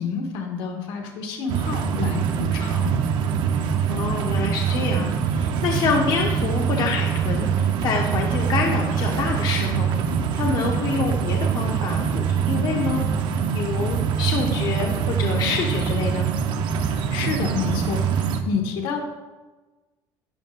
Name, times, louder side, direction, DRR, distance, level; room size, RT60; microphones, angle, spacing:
voice 1, 0.0-3.0 16.8-19.0, left 6 dB, 80° left, 2 dB, 1.7 m, -29 dB
sound 1, 1.5-18.4, right 7 dB, 65° right, 0.8 m, -24 dB
voice 2, 3.9-9.9 10.3-13.1 13.5-16.3, left 5 dB, 55° left, 1 dB, 1.1 m, -27 dB
12.5 x 9.3 x 2.6 m, 1.2 s
cardioid pair, 140°, 9 cm